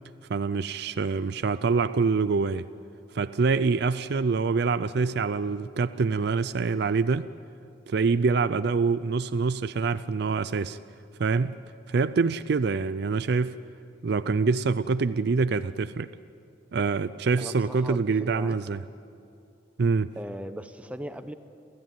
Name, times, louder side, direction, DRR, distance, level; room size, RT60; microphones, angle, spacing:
voice 1, 0.3-2.7 3.1-7.3 7.9-10.8 11.2-11.5 11.9-13.6 14.0-16.1 16.7-18.8 19.8-20.1, right 4 dB, 60° right, 13 dB, 0.4 m, -25 dB
voice 2, 17.4-18.6 20.2-21.3, equal, 5° right, 9 dB, 0.8 m, -38 dB
28.5 x 14.0 x 9.2 m, 2.6 s
head